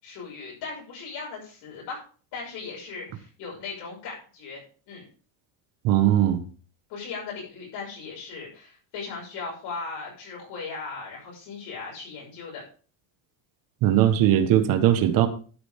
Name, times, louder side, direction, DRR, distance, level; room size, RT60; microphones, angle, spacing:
voice 1, 0.0-2.0 2.3-5.1 6.9-12.6, left 4 dB, 55° left, -3 dB, 6.3 m, -38 dB
voice 2, 5.8-6.4 13.8-15.3, right 11 dB, 45° right, 9 dB, 1.4 m, -19 dB
12.5 x 8.9 x 3.6 m, 0.38 s
cardioid pair, 175°, 47 cm